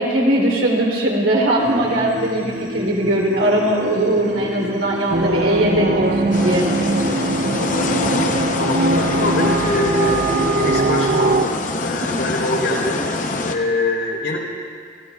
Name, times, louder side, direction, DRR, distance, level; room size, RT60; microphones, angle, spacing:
voice 1, 0.0-6.7 12.1-12.2, right 1 dB, 85° right, -2 dB, 3.2 m, -19 dB
sound 1, 1.6-10.5, equal, 65° right, 4.5 m, -33 dB
sound 2, 5.1-11.4, right 2 dB, 50° right, 0.5 m, -21 dB
sound 3, 6.3-13.6, left 3 dB, 40° left, 0.8 m, -25 dB
voice 2, 8.6-13.0 13.4-14.4, left 2 dB, 75° left, -2 dB, 3.9 m, -24 dB
28.5 x 16.5 x 2.4 m, 2.2 s
head